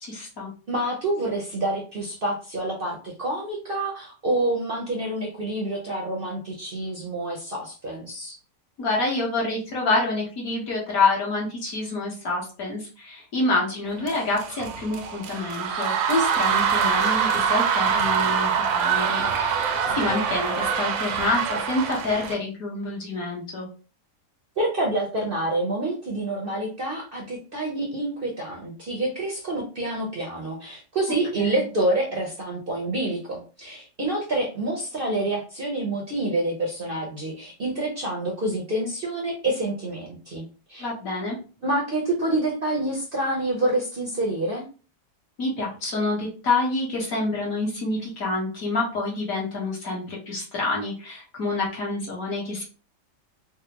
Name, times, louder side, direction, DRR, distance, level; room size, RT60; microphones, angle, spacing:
voice 1, 0.0-0.5 8.8-23.7 31.4-31.6 40.8-41.4 45.4-52.6, left 2 dB, 55° left, -3 dB, 1.5 m, -27 dB
voice 2, 0.7-8.4 24.6-40.9 41.6-44.7, right 1 dB, 55° right, -1 dB, 0.6 m, -27 dB
sound 1, 14.0-22.3, right 7 dB, 70° right, 1.0 m, -24 dB
3.9 x 2.1 x 2.8 m, 0.36 s
omnidirectional pair, 1.8 m